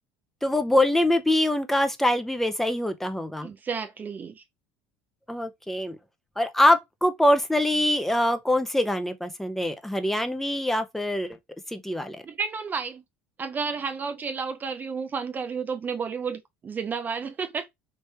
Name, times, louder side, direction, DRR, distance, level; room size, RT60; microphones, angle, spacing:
voice 1, 0.4-3.5 5.3-6.0 6.4-11.4 11.7-12.2, left 1 dB, 5° left, 0.7 m, -24 dB
voice 2, 3.4-4.4 12.2-13.0 13.4-17.7, right 5 dB, 30° right, 0.5 m, -31 dB
3.3 x 3.1 x 2.8 m
supercardioid pair, 85°, 6 cm